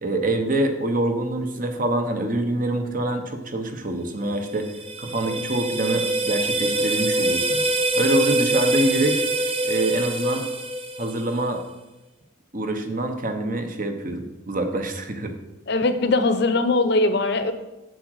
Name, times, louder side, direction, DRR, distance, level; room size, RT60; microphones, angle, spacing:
voice 1, 0.0-4.7 5.0-7.6 7.9-9.2 9.6-10.4 11.0-11.6 12.5-15.3, right 1 dB, 40° right, 6 dB, 1.1 m, -25 dB
sound 1, 4.4-11.5, right 2 dB, 25° right, 0.6 m, -24 dB
voice 2, 15.7-17.5, left 2 dB, 55° left, 9 dB, 0.8 m, -20 dB
7.9 x 7.8 x 4.8 m, 1.0 s
head